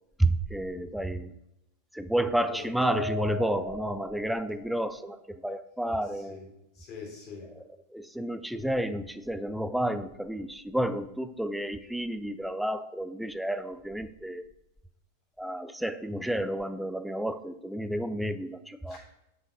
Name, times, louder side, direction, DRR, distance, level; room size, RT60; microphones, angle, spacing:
voice 1, 0.2-1.3 1.9-6.4 7.9-14.5 15.4-19.0, right 1 dB, ahead, 12 dB, 0.4 m, -31 dB
Mallet percussion, 2.8-5.1, right 1 dB, 60° right, 0.7 m, -38 dB
voice 2, 6.7-7.5 18.9-19.0, left 6 dB, 35° left, -1 dB, 3.4 m, -43 dB
7.9 x 5.6 x 5.1 m, 0.88 s
figure-of-eight pair, 90°, 0 cm